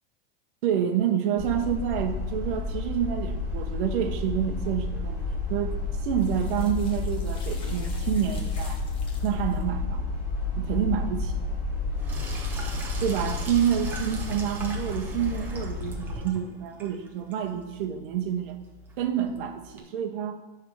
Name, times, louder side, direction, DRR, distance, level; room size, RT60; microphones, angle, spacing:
voice 1, 0.6-8.8 9.2-10.1 10.6-11.6 13.0-18.6 19.0-20.4, right 9 dB, 55° right, 3 dB, 0.7 m, -28 dB
sound 1, 1.4-16.2, left 3 dB, 35° left, 3.0 m, -31 dB
sound 2, 6.1-9.6 12.2-12.3, left 3 dB, 15° left, 0.7 m, -49 dB
Sink (filling or washing), 12.0-19.8, right 3 dB, 5° right, 0.3 m, -42 dB
9.5 x 3.4 x 6.8 m, 1.1 s
supercardioid pair, 175°, 31 cm